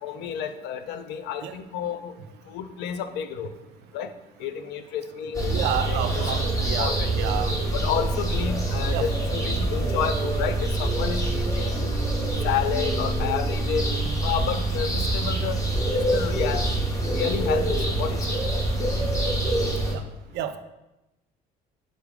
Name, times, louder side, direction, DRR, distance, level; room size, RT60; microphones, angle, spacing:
voice 1, 0.0-2.1 2.5-3.5 3.9-4.1 4.4-6.1 6.6-7.2 7.7-12.0 12.4-13.9 14.2-15.6 15.9-16.7 17.1-18.2, left 8 dB, 80° left, 9 dB, 0.4 m, -30 dB
sound 1, 5.3-19.9, right 2 dB, 20° left, 0.9 m, -25 dB
voice 2, 5.3-7.6 8.7-9.1 14.0-14.1 19.9-20.0 20.3-20.6, right 10 dB, 80° right, 10 dB, 0.4 m, -30 dB
sound 2, 7.2-8.0 9.1-14.2, right 2 dB, 25° right, 0.6 m, -39 dB
3.8 x 3.5 x 3.5 m, 0.96 s
cardioid pair, 110°, 17 cm